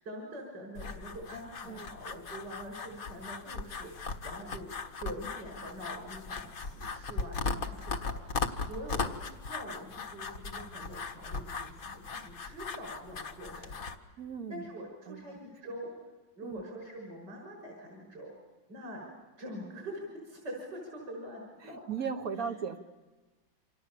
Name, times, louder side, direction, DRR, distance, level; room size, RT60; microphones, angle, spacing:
voice 1, 0.0-4.7 5.0-13.9 14.5-15.9 16.3-18.3 18.7-19.1 19.4-21.8, equal, 70° right, -1 dB, 6.6 m, -44 dB
sound 1, 0.7-13.9, left 4 dB, 50° left, 1.7 m, -38 dB
voice 2, 14.2-14.7 15.1-15.4 16.4-16.6 21.6-22.8, right 6 dB, 50° right, 8 dB, 1.8 m, -37 dB
28.5 x 27.0 x 7.0 m, 1.2 s
omnidirectional pair, 2.0 m